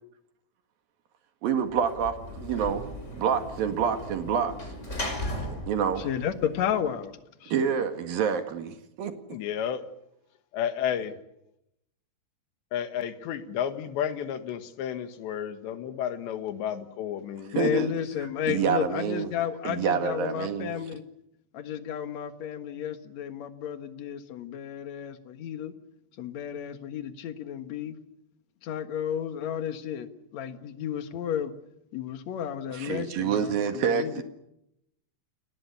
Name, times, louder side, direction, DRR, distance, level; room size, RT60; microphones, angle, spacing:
voice 1, 1.4-2.8 3.1-4.5 5.4-6.1 7.5-9.1 17.6-17.9 18.5-19.3 19.6-20.7 32.7-34.2, right 7 dB, 60° right, 7 dB, 3.4 m, -27 dB
Sliding door / Slam, 1.7-7.1, left 1 dB, 15° left, 5.5 m, -37 dB
voice 2, 6.0-7.8 17.5-21.0 21.5-25.7 26.2-28.0 28.6-31.5 31.9-34.2, left 9 dB, 60° left, 9 dB, 1.9 m, -32 dB
voice 3, 9.3-9.8 10.5-11.2 12.7-17.6, left 9 dB, 75° left, 9 dB, 3.8 m, -32 dB
29.5 x 19.5 x 8.4 m, 0.81 s
omnidirectional pair, 5.2 m